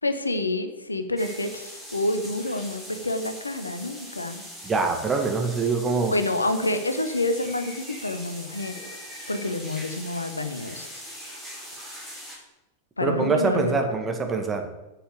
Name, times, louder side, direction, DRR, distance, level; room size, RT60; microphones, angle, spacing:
voice 1, 0.0-4.4 6.1-8.7 9.3-10.9 13.0-14.0, left 2 dB, 80° left, 9 dB, 0.9 m, -28 dB
sound 1, 1.2-12.4, equal, 5° left, 4.2 m, -41 dB
voice 2, 4.6-6.1 13.0-14.7, right 4 dB, 20° right, 4 dB, 1.8 m, -24 dB
7.8 x 6.9 x 8.4 m, 0.99 s
figure-of-eight pair, 90°, 0 cm